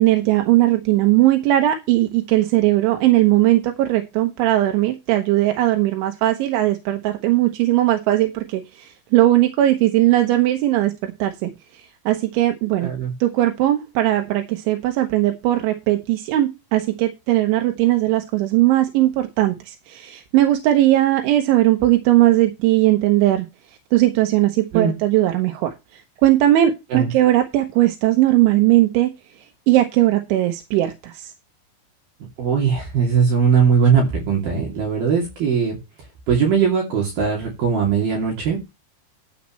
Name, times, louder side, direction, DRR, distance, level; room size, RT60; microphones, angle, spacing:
voice 1, 0.0-12.9 13.2-23.5 23.9-29.1 29.7-31.3, right 15 dB, 85° right, 3.5 m, -18 dB
voice 2, 12.8-13.1 24.7-24.9 26.9-27.1 32.4-35.8 36.3-38.6, right 6 dB, 55° right, 4.3 m, -19 dB
12.5 x 8.4 x 3.2 m
omnidirectional pair, 5.3 m